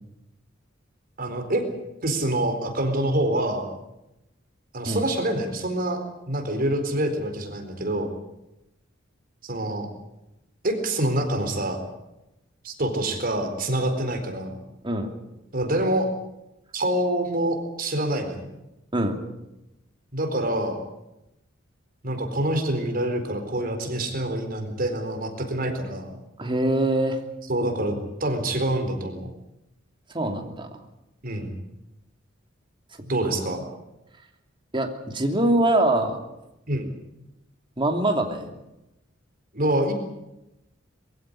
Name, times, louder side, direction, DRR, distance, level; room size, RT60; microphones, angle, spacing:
voice 1, 1.2-1.7 2.0-3.7 4.7-6.0 6.3-8.1 9.4-9.9 10.6-11.8 12.6-14.5 15.5-16.1 16.7-18.5 20.1-20.8 22.0-26.1 27.5-29.3 31.2-31.5 33.0-33.6 36.7-36.9 39.5-39.9, right 1 dB, 50° right, 5 dB, 4.2 m, -26 dB
voice 2, 26.4-27.2 30.1-30.7 34.7-36.2 37.8-38.5, right 1 dB, 25° right, 4 dB, 3.0 m, -23 dB
23.0 x 15.5 x 10.0 m, 0.91 s
head